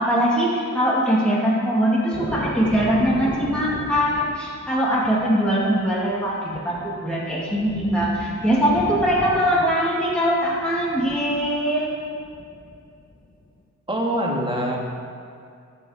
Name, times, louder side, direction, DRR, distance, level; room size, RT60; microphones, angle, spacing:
voice 1, 0.0-11.9, equal, 5° left, -6 dB, 2.3 m, -22 dB
sound 1, 2.1-13.5, left 2 dB, 25° left, 1.1 m, -37 dB
voice 2, 13.9-14.8, equal, 15° right, -1 dB, 2.0 m, -24 dB
13.5 x 5.4 x 5.0 m, 2.4 s
cardioid pair, 55°, 33 cm